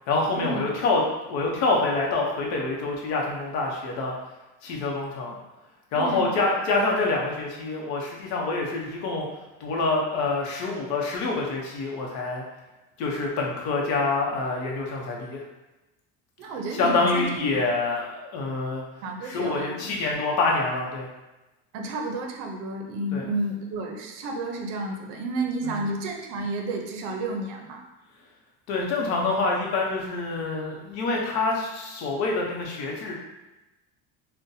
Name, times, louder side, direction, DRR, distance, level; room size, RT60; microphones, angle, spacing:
voice 1, 0.1-4.1 4.6-5.3 5.9-9.3 9.6-12.4 13.0-15.4 16.7-18.8 19.2-21.1 23.1-23.3 25.6-25.8 28.7-33.1, left 3 dB, 60° left, -1 dB, 0.8 m, -26 dB
voice 2, 6.0-6.3 16.4-17.4 19.0-19.9 21.7-27.8, right 2 dB, 60° right, 2 dB, 0.6 m, -31 dB
3.8 x 2.2 x 2.6 m, 1.0 s
cardioid pair, 160°, 30 cm